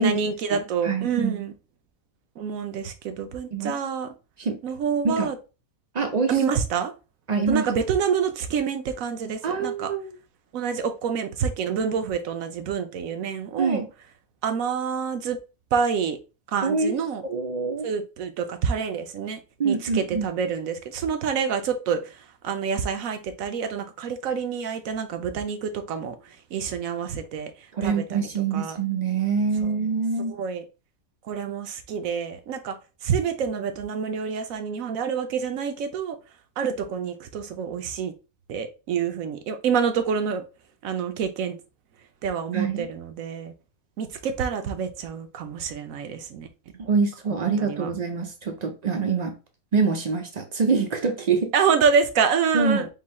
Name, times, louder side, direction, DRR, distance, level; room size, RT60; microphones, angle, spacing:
voice 1, 0.0-1.5 2.4-4.1 4.6-5.4 6.3-6.9 7.5-9.9 10.5-13.8 14.4-15.4 15.7-16.2 16.5-17.2 17.8-28.8 29.6-29.8 30.3-30.6 31.2-36.2 36.6-38.1 38.5-40.4 40.8-41.6 42.2-43.5 44.0-46.5 47.3-47.9 51.5-52.9, right 6 dB, 75° right, 1.1 m, -27 dB
voice 2, 0.8-1.3 3.5-3.8 4.4-4.6 5.0-5.3 5.9-6.3 7.3-7.7 9.4-10.1 13.6-13.9 16.6-16.9 17.3-17.9 19.6-20.2 27.7-30.4 42.5-42.9 46.8-49.4 49.7-51.5 52.5-52.8, right 4 dB, 55° right, 0.4 m, -25 dB
3.8 x 2.6 x 4.2 m
omnidirectional pair, 1.5 m